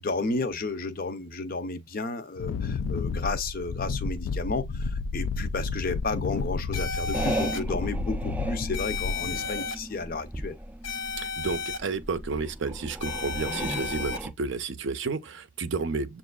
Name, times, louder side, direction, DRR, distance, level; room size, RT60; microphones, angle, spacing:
voice 1, 0.0-10.6, left 3 dB, 45° left, 0.6 m, -32 dB
Wind, 2.4-9.5, left 4 dB, 85° left, 0.3 m, -31 dB
sound 1, 6.7-7.6 8.7-9.7 10.8-11.8 13.0-14.2, left 5 dB, 65° left, 0.9 m, -33 dB
sound 2, 7.1-14.3, right 1 dB, 5° right, 0.4 m, -36 dB
voice 2, 11.2-16.2, right 4 dB, 60° right, 0.5 m, -31 dB
7.0 x 2.4 x 2.2 m
head